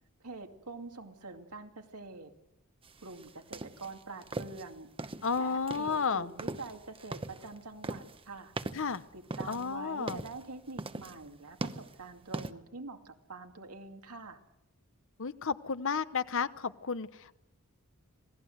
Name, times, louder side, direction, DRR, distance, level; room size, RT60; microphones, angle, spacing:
voice 1, 0.2-2.3 3.0-4.9 5.4-8.5 9.1-14.4, right 3 dB, 90° right, 4 dB, 2.5 m, -45 dB
sound 1, 2.8-12.5, right 2 dB, 25° right, 0.9 m, -41 dB
voice 2, 5.2-6.3 8.7-9.0 9.5-10.2 15.2-17.3, left 5 dB, 60° left, 14 dB, 0.9 m, -32 dB
27.0 x 18.0 x 7.9 m, 0.86 s
head